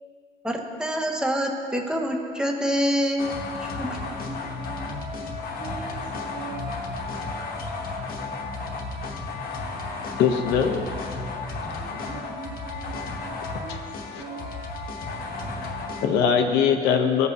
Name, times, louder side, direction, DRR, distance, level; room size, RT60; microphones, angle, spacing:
voice 1, 0.4-4.0, equal, 5° right, 2 dB, 0.8 m, -26 dB
sound 1, 3.2-16.1, left 3 dB, 60° left, 1.0 m, -33 dB
voice 2, 3.8-6.7 11.8-14.5, right 5 dB, 55° right, -8 dB, 1.6 m, -42 dB
voice 3, 10.2-10.8 14.1-14.2 15.4-17.3, left 7 dB, 85° left, 5 dB, 0.7 m, -22 dB
14.5 x 5.4 x 2.7 m, 2.4 s
cardioid pair, 110°, 17 cm